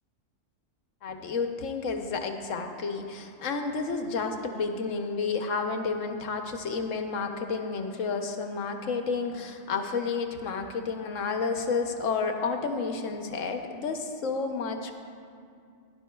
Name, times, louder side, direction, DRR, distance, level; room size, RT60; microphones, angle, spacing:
voice 1, 1.0-14.9, left 4 dB, 85° left, 5 dB, 1.2 m, -31 dB
17.0 x 11.5 x 2.3 m, 2.3 s
omnidirectional pair, 1.3 m